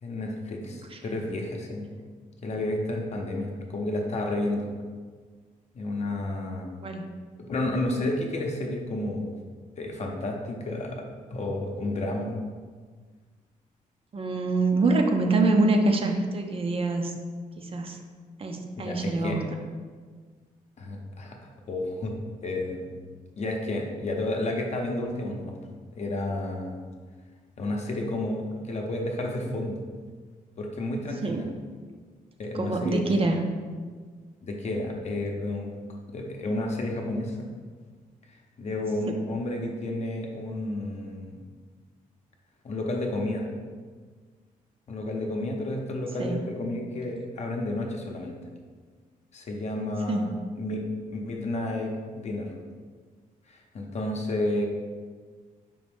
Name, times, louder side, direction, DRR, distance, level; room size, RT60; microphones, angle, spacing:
voice 1, 0.0-1.9 2.4-4.7 5.7-6.7 7.4-9.3 9.8-11.0 11.3-12.4 18.8-19.4 20.8-21.4 21.7-22.1 22.4-23.0 23.4-26.8 27.6-29.8 30.6-31.5 32.4-33.3 34.4-35.7 36.1-37.5 38.3-41.4 42.6-43.5 44.9-48.4 49.3-50.8 51.1-52.5 53.5-54.7, left 1 dB, 50° left, 1 dB, 0.7 m, -31 dB
voice 2, 14.1-17.1 17.6-18.0 18.4-19.4 30.9-31.5 32.5-33.4 38.7-38.8 46.2-46.5 50.1-50.4, right 2 dB, 40° right, 4 dB, 0.5 m, -25 dB
5.2 x 2.5 x 3.5 m, 1.5 s
cardioid pair, 95°, 15 cm